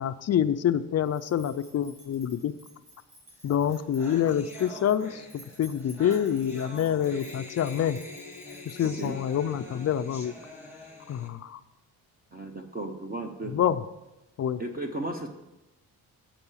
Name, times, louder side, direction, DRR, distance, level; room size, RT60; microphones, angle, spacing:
voice 1, 0.0-2.5 3.4-8.0 8.7-10.3 11.1-11.6 13.5-13.8 14.4-14.6, left 9 dB, 40° left, 12 dB, 0.4 m, -27 dB
sound 1, 1.0-9.4, equal, 75° right, 2.7 m, -55 dB
sound 2, 3.4-3.5 3.7-11.3, left 2 dB, 5° right, 1.2 m, -45 dB
voice 2, 12.3-13.5 14.6-15.3, right 2 dB, 25° right, 4 dB, 0.6 m, -34 dB
8.1 x 5.4 x 7.2 m, 0.99 s
wide cardioid pair, 155°, 39 cm